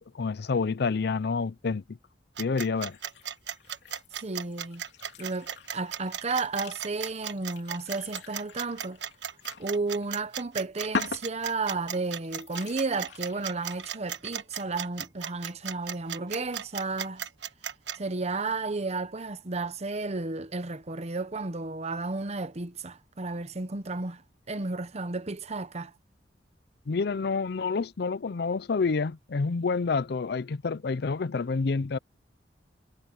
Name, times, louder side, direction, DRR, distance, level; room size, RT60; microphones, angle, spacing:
voice 1, 0.1-2.0 2.4-3.0 26.9-32.0, left 4 dB, 65° left, 0.5 m, -28 dB
sound 1, 2.4-18.0, right 9 dB, 85° right, 1.3 m, -36 dB
sound 2, 2.9-4.1 4.5-9.7 10.0-10.1 10.9-11.8 12.2-14.0, left 3 dB, 90° left, 3.0 m, -41 dB
voice 2, 4.2-4.8 5.2-9.0 9.6-17.3 17.9-24.2 24.5-25.9, right 3 dB, 40° right, 0.9 m, -33 dB
head